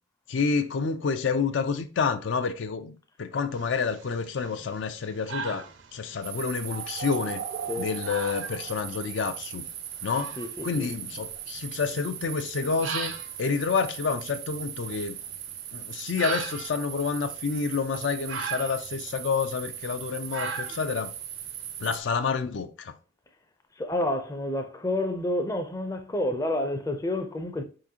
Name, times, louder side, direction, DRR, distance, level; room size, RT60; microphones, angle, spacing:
voice 1, 0.3-5.6 5.9-7.4 7.8-9.7 10.0-10.4 10.6-13.1 13.4-15.2 15.7-21.1 21.8-22.9, left 5 dB, 75° left, 0.4 m, -29 dB
sound 1, 3.5-22.2, right 6 dB, 80° right, 0.7 m, -41 dB
sound 2, 6.2-22.0, right 9 dB, 50° right, 0.4 m, -38 dB
voice 2, 10.4-10.9 23.8-27.6, left 1 dB, 15° left, 0.4 m, -29 dB
4.8 x 3.8 x 2.8 m
head